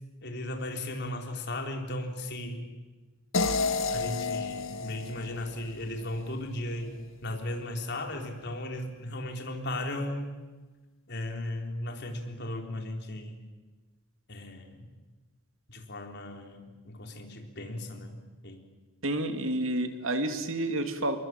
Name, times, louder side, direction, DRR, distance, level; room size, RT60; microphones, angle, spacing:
voice 1, 0.2-2.7 3.9-7.0 7.2-10.3 11.1-13.5 14.3-14.9 15.7-18.2 18.4-18.6, left 1 dB, 55° left, 3 dB, 4.1 m, -36 dB
sound 1, 3.3-6.4, left 4 dB, 80° left, 1.6 m, -31 dB
voice 2, 19.0-21.2, right 1 dB, 75° right, 7 dB, 2.6 m, -29 dB
28.5 x 22.5 x 8.9 m, 1.2 s
head